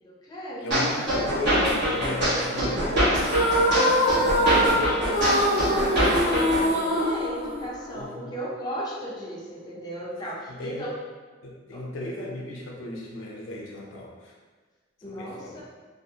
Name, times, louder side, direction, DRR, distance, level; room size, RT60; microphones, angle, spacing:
voice 1, 0.0-1.1 5.8-10.9 11.7-11.9 15.0-15.6, equal, 20° left, -6 dB, 0.5 m, -36 dB
voice 2, 0.6-3.3 4.0-5.3 7.9-8.3 10.6-10.9 11.4-14.3 15.1-15.6, left 1 dB, 80° left, -2 dB, 0.5 m, -35 dB
sound 1, 0.7-6.7, equal, 65° right, 1.0 m, -24 dB
sound 2, 3.2-8.0, equal, 45° right, 1.0 m, -23 dB
2.5 x 2.0 x 2.6 m, 1.4 s
head